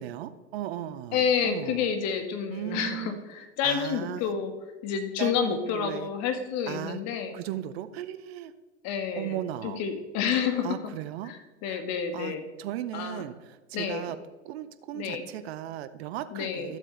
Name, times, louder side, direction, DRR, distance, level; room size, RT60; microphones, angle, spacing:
voice 1, 0.0-1.9 2.5-3.2 3.6-4.2 5.2-6.1 6.7-7.0 7.3-8.5 9.2-9.8 10.6-11.3 11.7-11.8 12.1-12.3 12.6-14.2 14.4-16.8, right 12 dB, 65° right, 12 dB, 0.7 m, -36 dB
voice 2, 1.1-4.5 4.8-7.4 8.8-9.4 9.6-10.7 11.2-12.4 12.9-13.2 13.7-14.1 14.9-15.3 16.3-16.7, left 7 dB, 50° left, 7 dB, 1.6 m, -29 dB
13.0 x 7.4 x 3.3 m, 1.2 s
hypercardioid pair, 90°, 34 cm